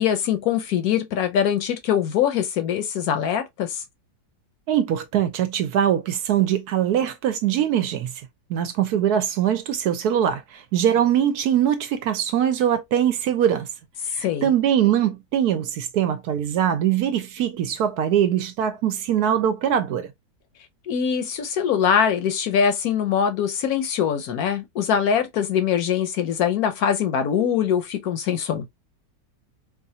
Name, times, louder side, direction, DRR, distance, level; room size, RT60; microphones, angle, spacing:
voice 1, 0.0-3.8 14.2-14.5 20.9-28.7, left 8 dB, 65° left, 1.0 m, -23 dB
voice 2, 4.7-8.1 8.5-13.7 14.1-20.1, right 10 dB, 75° right, 1.0 m, -22 dB
4.0 x 2.5 x 2.7 m
omnidirectional pair, 1.8 m